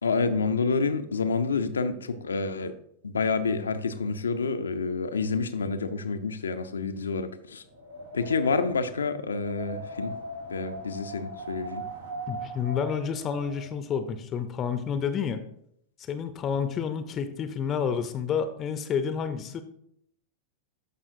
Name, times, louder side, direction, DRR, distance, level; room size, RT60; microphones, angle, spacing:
voice 1, 0.0-2.7 3.0-7.6 8.1-10.1 10.5-11.8, left 4 dB, 70° left, 9 dB, 0.6 m, -28 dB
Wind, 7.7-13.7, right 1 dB, 75° right, 1.5 m, -39 dB
voice 2, 12.3-15.4 16.0-19.6, left 7 dB, 30° left, 10 dB, 0.6 m, -29 dB
13.0 x 5.6 x 2.7 m, 0.71 s
figure-of-eight pair, 90°, 0 cm